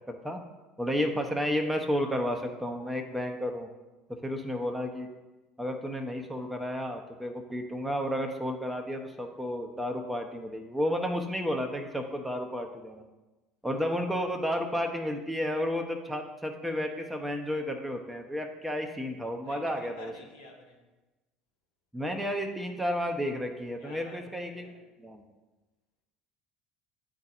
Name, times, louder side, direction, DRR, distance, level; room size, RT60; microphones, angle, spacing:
voice 1, 0.1-0.4 0.8-3.7 4.2-5.1 5.6-13.1 13.6-20.1 21.9-24.7 25.0-25.2, equal, 5° right, 3 dB, 0.7 m, -32 dB
voice 2, 19.4-20.8 23.8-24.8, left 2 dB, 75° left, -1 dB, 1.2 m, -51 dB
9.5 x 4.0 x 2.5 m, 1.1 s
hypercardioid pair, 65°, 0 cm